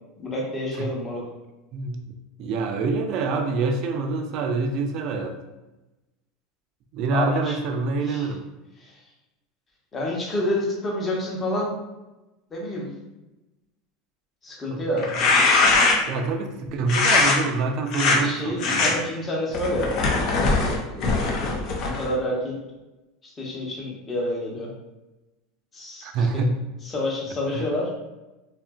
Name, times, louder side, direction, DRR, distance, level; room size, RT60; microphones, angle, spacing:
voice 1, 0.2-1.2 7.1-7.5 8.0-8.3 8.8-8.9 9.9-11.7 12.5-12.9 14.4-15.1 18.1-19.9 20.4-22.5 23.2-24.7 25.7-26.4 26.8-27.9, left 1 dB, 25° left, -3 dB, 0.8 m, -29 dB
voice 2, 1.7-2.1 2.4-5.4 6.9-8.4 14.7-15.2 16.1-19.0 26.0-26.6 27.5-27.6, right 3 dB, 55° right, 5 dB, 0.4 m, -26 dB
sound 1, 15.0-16.2 16.9-17.4 17.9-18.2 18.6-18.9 19.5-22.1, left 3 dB, 55° left, 0.5 m, -21 dB
2.8 x 2.4 x 2.3 m, 1.0 s
supercardioid pair, 110°, 0 cm